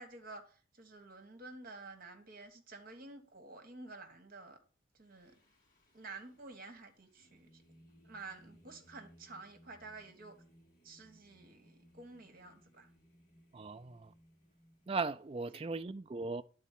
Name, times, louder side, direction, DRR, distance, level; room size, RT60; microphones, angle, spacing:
voice 1, 0.0-4.6 5.0-5.3 5.9-7.6 8.0-10.3 10.8-12.9 15.5-15.6, right 3 dB, 45° right, 1.4 m, -51 dB
Singing, 5.0-15.4, equal, 40° left, 2.7 m, -65 dB
voice 2, 13.5-14.1 14.9-16.4, right 4 dB, 25° right, 0.4 m, -38 dB
11.0 x 4.2 x 7.4 m
head